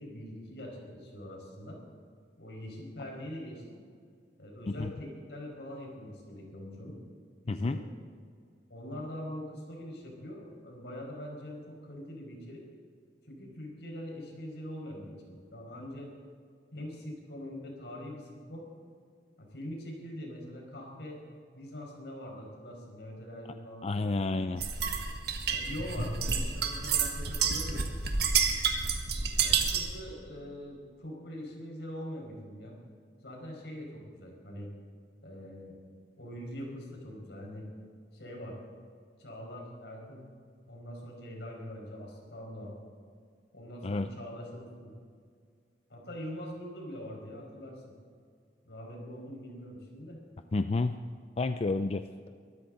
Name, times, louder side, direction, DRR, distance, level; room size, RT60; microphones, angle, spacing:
voice 1, 0.0-1.8 2.4-3.8 4.4-7.0 7.4-7.8 8.7-12.6 13.3-16.1 16.7-18.6 19.4-21.2 21.5-24.2 25.5-27.9 29.4-32.8 33.2-34.7 35.2-35.7 36.2-37.6 38.1-38.6 39.2-40.3 40.7-42.7 43.5-44.9 45.9-47.9 48.6-50.2, equal, 75° left, 0 dB, 5.1 m, -43 dB
voice 2, 23.8-24.6 43.8-44.1 50.5-51.0 51.4-52.0, left 3 dB, 35° left, 9 dB, 0.4 m, -29 dB
sound 1, 24.6-30.0, right 6 dB, 65° right, 1.7 m, -29 dB
23.0 x 14.0 x 3.9 m, 2.1 s
head